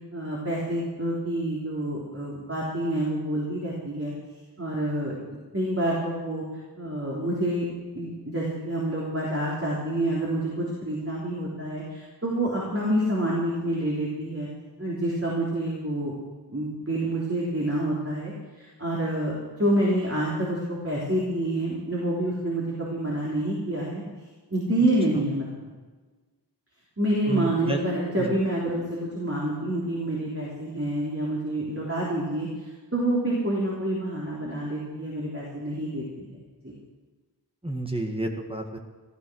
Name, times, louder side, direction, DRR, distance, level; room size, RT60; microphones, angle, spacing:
voice 1, 0.1-4.1 4.6-5.2 5.5-6.4 6.8-7.7 7.9-14.5 14.8-16.1 16.5-24.0 24.5-25.5 27.0-32.5 32.9-36.3, right 1 dB, 30° right, -5 dB, 3.6 m, -27 dB
voice 2, 27.3-27.8 37.6-38.8, right 1 dB, 15° right, 2 dB, 1.7 m, -30 dB
15.0 x 12.5 x 6.4 m, 1.3 s
wide cardioid pair, 45°, 42 cm